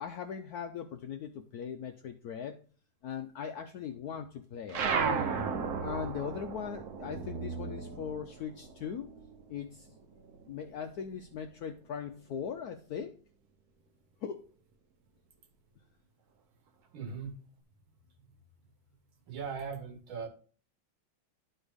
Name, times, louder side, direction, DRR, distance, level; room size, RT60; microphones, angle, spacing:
voice 1, 0.0-2.6 3.0-4.9 5.8-9.1 9.5-10.0 10.5-13.2 14.2-14.5, left 7 dB, 80° left, 0.8 m, -39 dB
sound 1, 4.7-9.6 9.9-11.3, right 5 dB, 60° right, 1.1 m, -35 dB
voice 2, 16.9-17.4 19.3-20.3, right 6 dB, 75° right, 1.8 m, -39 dB
11.0 x 4.4 x 3.4 m
omnidirectional pair, 2.2 m